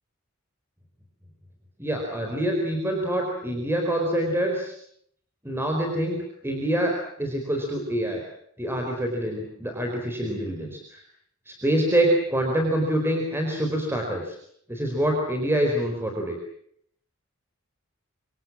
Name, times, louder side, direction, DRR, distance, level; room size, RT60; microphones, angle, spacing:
voice 1, 1.8-4.7 5.4-6.2 6.4-8.2 8.6-11.0 11.5-14.4 14.7-16.4, right 1 dB, 10° right, 2 dB, 4.5 m, -26 dB
26.5 x 26.0 x 7.5 m, 0.67 s
head